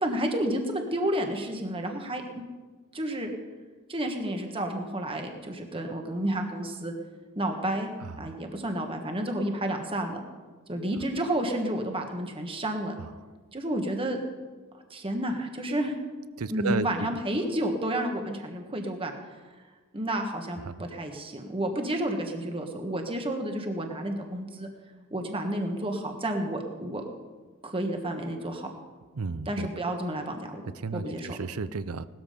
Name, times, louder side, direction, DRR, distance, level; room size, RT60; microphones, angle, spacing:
voice 1, 0.0-2.4 2.9-3.3 3.9-6.9 7.3-7.9 8.2-10.2 10.7-12.9 13.5-14.2 14.9-16.0 16.5-19.4 19.9-24.7 25.1-27.0 27.6-28.7 29.5-30.6 30.9-31.3, right 1 dB, 25° right, 4 dB, 1.5 m, -30 dB
voice 2, 8.0-8.3 13.0-13.1 16.4-17.2 20.6-20.7 29.1-29.7 30.7-32.1, right 4 dB, 75° right, 15 dB, 0.6 m, -33 dB
18.0 x 13.5 x 5.1 m, 1.4 s
head